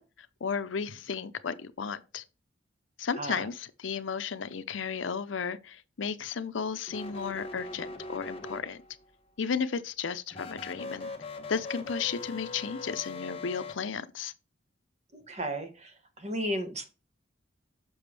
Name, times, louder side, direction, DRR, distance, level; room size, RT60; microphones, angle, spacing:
voice 1, 0.0-2.2 3.0-8.8 9.4-11.1 11.5-14.3, left 6 dB, 80° left, 0.6 m, -34 dB
sound 1, 6.9-9.0 10.3-13.7, left 3 dB, 30° left, 1.1 m, -41 dB
voice 2, 15.3-15.9 16.2-16.9, right 1 dB, 35° right, 1.4 m, -33 dB
7.0 x 5.9 x 3.4 m
head